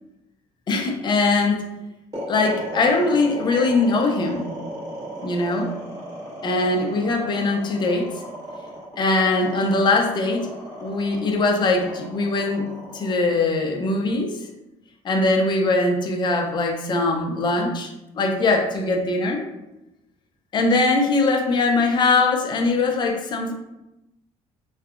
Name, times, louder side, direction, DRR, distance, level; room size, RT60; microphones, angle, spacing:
voice 1, 0.7-1.6 2.3-4.6 5.2-5.7 6.4-8.1 9.0-10.5 10.8-14.3 15.0-19.4 20.5-23.5, left 3 dB, 35° left, 2 dB, 0.4 m, -21 dB
sound 1, 2.1-14.4, equal, 25° right, 1.3 m, -35 dB
2.6 x 2.2 x 2.4 m, 0.93 s
cardioid pair, 110°, 14 cm